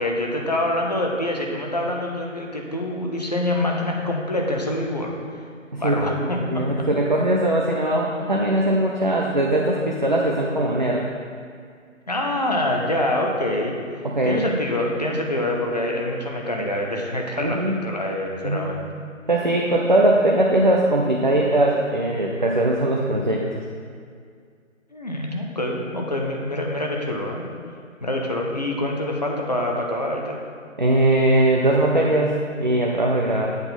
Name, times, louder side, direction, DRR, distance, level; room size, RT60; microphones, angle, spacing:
voice 1, 0.0-5.1 5.8-6.6 12.1-13.8 14.2-18.8 24.9-27.5 28.0-30.4, left 1 dB, 30° left, 0 dB, 0.7 m, -25 dB
voice 2, 5.7-11.0 14.0-14.4 17.4-17.8 18.4-18.7 19.3-23.6 30.8-33.5, right 1 dB, 35° right, -1 dB, 0.5 m, -20 dB
8.0 x 4.2 x 5.5 m, 2.1 s
figure-of-eight pair, 155°, 40 cm